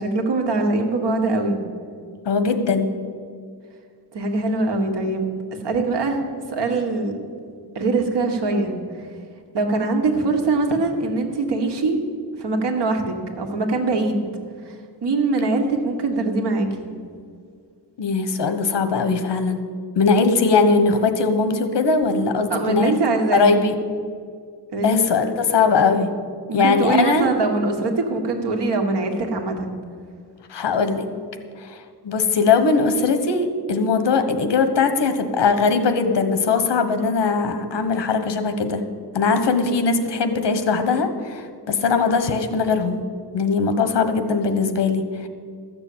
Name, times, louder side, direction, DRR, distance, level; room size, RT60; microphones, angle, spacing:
voice 1, 0.0-1.6 4.1-5.3 5.6-6.2 6.5-7.1 7.7-8.7 9.5-12.0 12.4-14.3 14.6-14.7 15.0-16.9 22.5-23.5 24.7-24.9 26.5-29.7, right 3 dB, 75° right, 3 dB, 1.7 m, -22 dB
voice 2, 2.2-2.9 18.0-19.6 19.9-23.0 23.3-23.7 24.8-26.1 26.5-27.3 30.5-31.1 31.6-38.8 39.1-43.0 43.3-45.3, left 4 dB, 85° left, 9 dB, 1.2 m, -20 dB
13.5 x 6.8 x 8.6 m, 2.1 s
wide cardioid pair, 175°, 41 cm